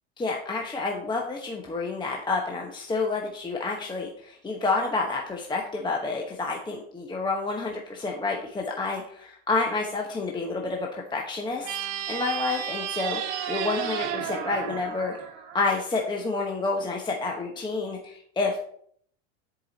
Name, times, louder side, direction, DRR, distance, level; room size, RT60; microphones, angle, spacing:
voice 1, 0.2-11.7 12.1-18.6, left 3 dB, 15° left, 0 dB, 1.0 m, -29 dB
sound 1, 11.6-16.1, right 10 dB, 60° right, 1.3 m, -33 dB
10.0 x 4.9 x 4.0 m, 0.63 s
supercardioid pair, 120°, 35 cm